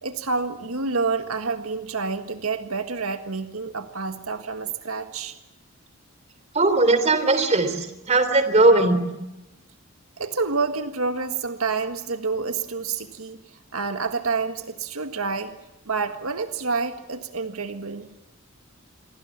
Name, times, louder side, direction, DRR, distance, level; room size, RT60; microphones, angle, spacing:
voice 1, 0.0-5.4 10.2-15.5 15.8-18.1, right 4 dB, 85° right, 8 dB, 1.7 m, -28 dB
voice 2, 6.5-9.1, right 2 dB, 30° right, 11 dB, 3.4 m, -19 dB
28.5 x 23.0 x 7.4 m, 0.95 s
head